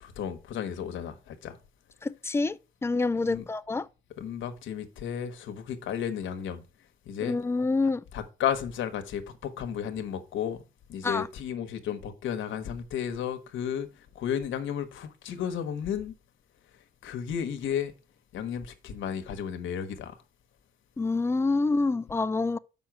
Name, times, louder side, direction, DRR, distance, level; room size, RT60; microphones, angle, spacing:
voice 1, 0.0-1.6 3.2-3.4 4.2-6.6 7.0-7.4 8.1-10.6 10.9-16.2 16.7-17.9 18.3-20.2, left 8 dB, 75° left, 1.1 m, -33 dB
voice 2, 2.0-3.9 7.2-8.0 11.0-11.3 21.0-22.6, left 3 dB, 15° left, 0.4 m, -27 dB
6.3 x 5.5 x 6.0 m
cardioid pair, 90°, 20 cm